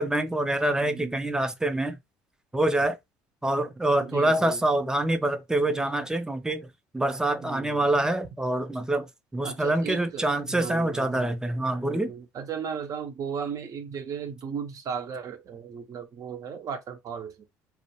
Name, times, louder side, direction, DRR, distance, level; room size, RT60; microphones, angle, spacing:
voice 1, 0.0-2.0 2.5-3.0 3.4-6.7 6.9-12.1, right 1 dB, 10° right, 0.5 m, -26 dB
voice 2, 0.9-1.3 4.0-4.6 7.4-7.9 9.4-11.4 11.8-17.4, right 7 dB, 50° right, 0.6 m, -36 dB
2.2 x 2.0 x 2.9 m
supercardioid pair, 75°, 7 cm